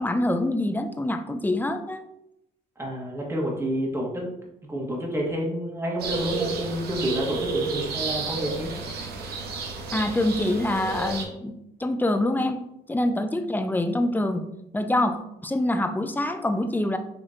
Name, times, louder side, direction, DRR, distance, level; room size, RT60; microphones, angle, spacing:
voice 1, 0.0-2.0 9.9-11.5 11.8-12.6 12.9-14.4 14.7-17.0, left 1 dB, 10° left, 7 dB, 0.5 m, -25 dB
voice 2, 2.8-4.2 4.7-8.7, equal, 15° right, -2 dB, 1.5 m, -29 dB
sound 1, 6.0-11.3, right 4 dB, 70° right, 0.8 m, -31 dB
6.2 x 3.0 x 2.5 m, 0.81 s
supercardioid pair, 75°, 17 cm